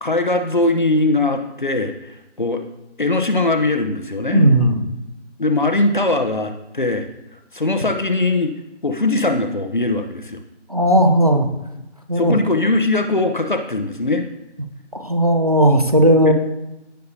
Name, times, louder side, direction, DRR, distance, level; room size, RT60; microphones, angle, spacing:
voice 1, 0.0-2.6 3.0-4.5 5.4-7.1 7.5-8.5 8.8-10.4 12.2-14.3 16.2-16.3, left 2 dB, 45° left, 7 dB, 0.8 m, -20 dB
voice 2, 4.3-4.8 10.7-11.5 12.1-12.4 14.9-16.3, right 1 dB, 30° right, 5 dB, 0.7 m, -15 dB
16.5 x 6.6 x 2.7 m, 0.95 s
figure-of-eight pair, 175°, 36 cm